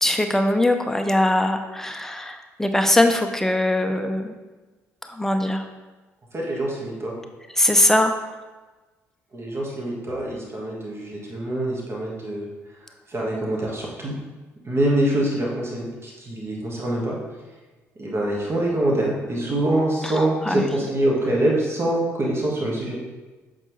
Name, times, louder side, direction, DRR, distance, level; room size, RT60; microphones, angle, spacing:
voice 1, 0.0-4.3 5.0-5.6 7.6-8.1 20.0-20.1 20.5-20.8, left 1 dB, 5° left, 6 dB, 0.6 m, -21 dB
voice 2, 6.3-7.2 9.3-12.5 13.1-14.2 14.7-17.2 17.9-23.0, right 1 dB, 35° right, -2 dB, 1.6 m, -25 dB
7.4 x 3.9 x 3.3 m, 1.2 s
figure-of-eight pair, 45°, 7 cm